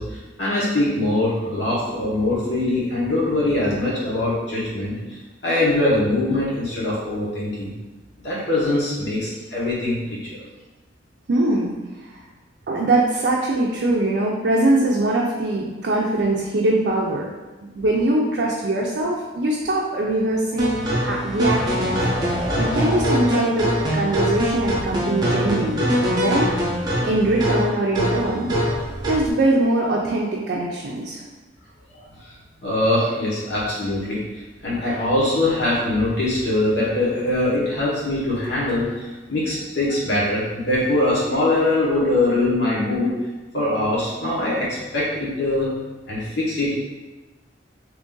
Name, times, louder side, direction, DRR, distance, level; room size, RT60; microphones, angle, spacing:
voice 1, 0.0-7.7 8.2-10.4 31.9-32.3 32.6-34.2 34.6-43.1 43.5-45.7 46.1-46.7, left 1 dB, 70° left, -7 dB, 1.2 m, -22 dB
voice 2, 11.3-12.2 12.7-17.3 17.7-22.3 22.6-26.5 27.0-28.5 29.1-31.2, right 2 dB, 60° right, -3 dB, 0.4 m, -22 dB
sound 1, 20.6-29.3, equal, 25° right, 0.6 m, -23 dB
3.0 x 2.5 x 3.7 m, 1.2 s
head